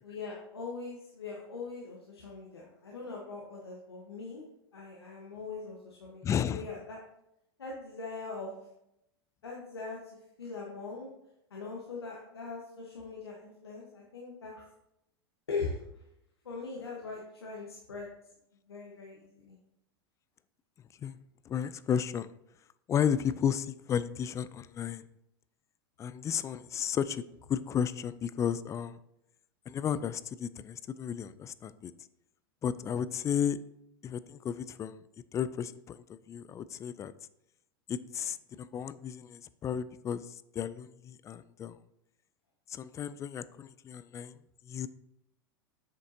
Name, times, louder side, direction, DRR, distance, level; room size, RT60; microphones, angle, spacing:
voice 1, 0.0-4.4 4.7-7.0 7.6-8.5 9.4-10.1 10.4-11.1 11.5-14.6 15.5-16.0 16.4-18.1 18.7-19.6, left 4 dB, 85° left, -3 dB, 1.2 m, -41 dB
voice 2, 6.2-6.7 21.0-21.2 21.5-22.3 22.9-25.0 26.0-27.2 27.5-29.0 29.7-31.9 32.6-33.6 34.0-35.0 35.3-37.1 37.9-41.8 42.7-44.3 44.7-44.9, left 8 dB, 25° left, 16 dB, 0.3 m, -33 dB
8.1 x 6.3 x 2.8 m, 0.83 s
hypercardioid pair, 95°, 13 cm